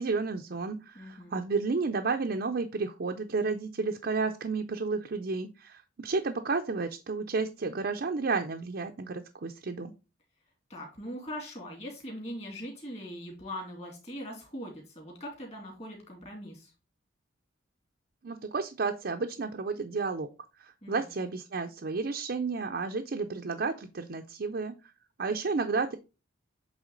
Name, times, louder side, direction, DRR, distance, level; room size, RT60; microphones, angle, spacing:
voice 1, 0.0-9.9 18.2-20.3 20.6-24.7 25.2-26.0, right 4 dB, 50° right, 4 dB, 0.5 m, -32 dB
voice 2, 0.9-1.4 10.7-16.7 20.8-21.1, equal, 30° left, 0 dB, 2.4 m, -41 dB
8.0 x 3.5 x 3.8 m, 0.30 s
head